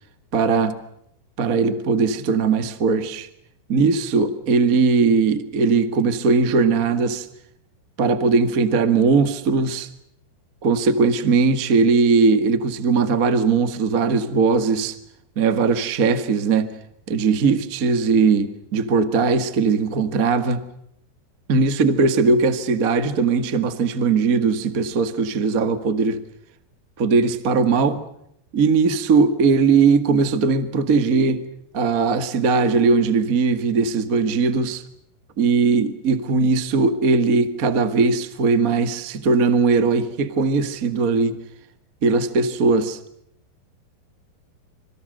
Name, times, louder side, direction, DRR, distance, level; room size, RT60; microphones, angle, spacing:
voice 1, 0.3-0.7 1.4-3.3 3.7-7.3 8.0-9.9 10.6-14.9 15.3-16.7 17.1-20.6 21.5-26.2 27.0-28.0 28.5-31.5 31.7-34.8 35.4-41.4 42.0-43.0, right 4 dB, 40° right, 1.2 m, -19 dB
26.5 x 26.0 x 6.6 m
omnidirectional pair, 4.7 m